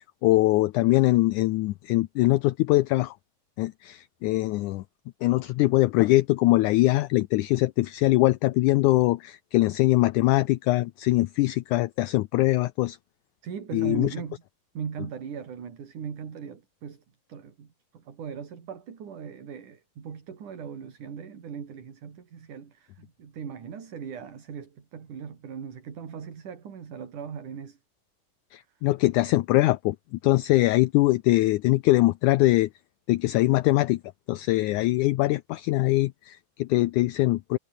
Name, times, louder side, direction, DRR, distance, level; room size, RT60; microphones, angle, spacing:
voice 1, 0.2-3.1 3.6-4.8 5.2-13.0 13.7-14.1 28.5-29.9 30.2-32.7 33.1-34.0 34.3-37.6, left 18 dB, 80° left, 1.8 m, -22 dB
voice 2, 13.4-14.4 14.7-17.0 17.3-27.8, right 7 dB, 60° right, 4.6 m, -39 dB
omnidirectional pair, 4.2 m